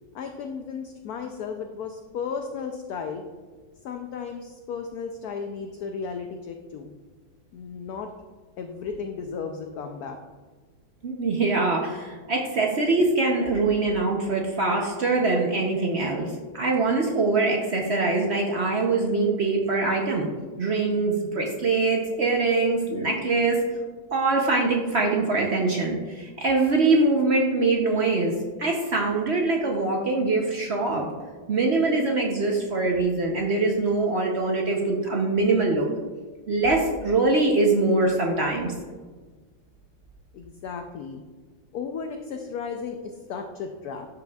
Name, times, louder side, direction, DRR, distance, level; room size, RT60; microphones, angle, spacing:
voice 1, 0.1-3.2 3.8-6.9 7.5-8.1 8.6-10.2 40.3-41.2 41.7-44.1, left 6 dB, 70° left, 4 dB, 0.9 m, -34 dB
voice 2, 11.0-20.3 20.6-23.6 24.1-28.3 28.6-31.1 31.5-35.9 36.5-38.7, right 3 dB, 60° right, 0 dB, 0.7 m, -23 dB
12.0 x 5.2 x 2.3 m, 1.4 s
omnidirectional pair, 2.0 m